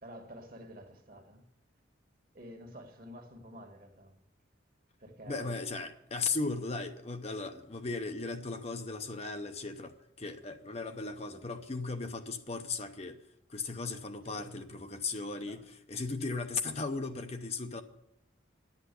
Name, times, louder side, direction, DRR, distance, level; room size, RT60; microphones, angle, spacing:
voice 1, 0.0-1.5 2.3-4.2 5.0-5.5 14.2-14.5 15.3-15.6, equal, 45° right, 1.6 m, -49 dB
voice 2, 5.3-13.2 13.5-17.8, left 3 dB, 30° left, 0.7 m, -37 dB
11.0 x 8.2 x 8.2 m
head